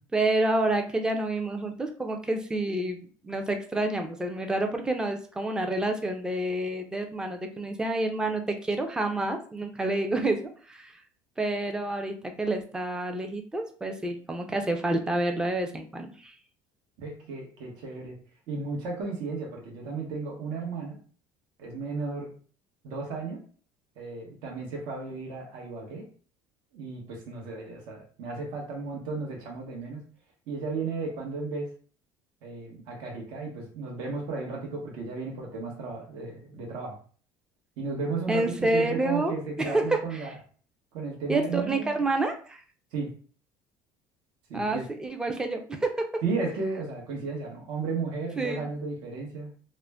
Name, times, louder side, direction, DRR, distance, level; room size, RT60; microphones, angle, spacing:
voice 1, 0.1-3.0 3.2-10.4 10.7-10.9 11.4-16.3 38.3-39.3 39.6-40.3 41.3-42.6 44.5-46.1 48.4-48.6, right 2 dB, 10° right, 4 dB, 0.4 m, -28 dB
voice 2, 17.0-18.2 18.5-21.0 21.6-22.3 22.8-23.4 24.0-26.0 26.7-30.0 30.5-31.7 32.4-37.0 37.8-40.3 40.9-42.0 42.9-43.1 44.5-44.8 46.2-49.5, right 4 dB, 70° right, -1 dB, 0.9 m, -34 dB
2.4 x 2.1 x 3.3 m, 0.42 s
cardioid pair, 135°, 8 cm